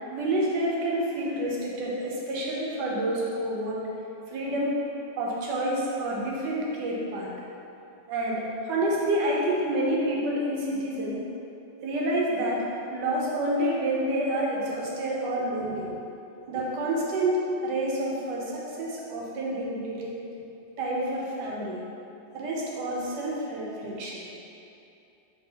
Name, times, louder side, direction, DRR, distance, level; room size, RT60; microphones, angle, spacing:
voice 1, 0.1-3.8 4.3-4.8 5.2-7.3 8.1-11.2 11.8-12.6 12.9-16.0 16.5-20.2 20.8-21.8 22.3-24.3, right 1 dB, 70° right, -3 dB, 1.3 m, -28 dB
4.7 x 3.3 x 2.8 m, 2.8 s
omnidirectional pair, 2.0 m